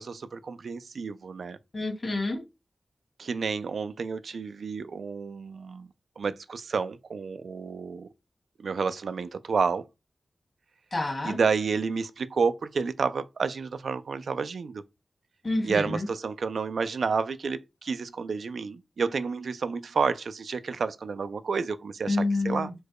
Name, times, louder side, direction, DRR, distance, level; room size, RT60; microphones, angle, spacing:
voice 1, 0.0-1.6 3.2-5.9 6.2-8.1 8.6-9.8 11.2-14.8 15.6-22.2 22.4-22.7, right 5 dB, 90° right, 0.3 m, -30 dB
voice 2, 1.7-2.4 10.9-11.4 15.4-16.1 22.1-22.7, left 2 dB, 40° left, 1.5 m, -28 dB
4.3 x 2.2 x 4.6 m
wide cardioid pair, 100°, 0 cm